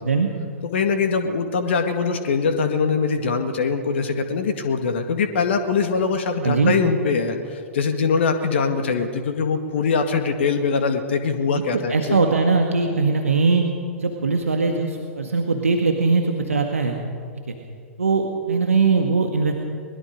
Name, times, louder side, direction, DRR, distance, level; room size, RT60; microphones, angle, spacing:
voice 1, 0.7-12.2, left 5 dB, 55° left, 7 dB, 1.8 m, -22 dB
voice 2, 6.4-6.7 11.7-13.7 14.0-17.0 17.5-17.6 18.0-19.5, right 4 dB, 75° right, 3 dB, 1.9 m, -20 dB
23.0 x 21.5 x 5.2 m, 2.2 s
figure-of-eight pair, 105°, 8 cm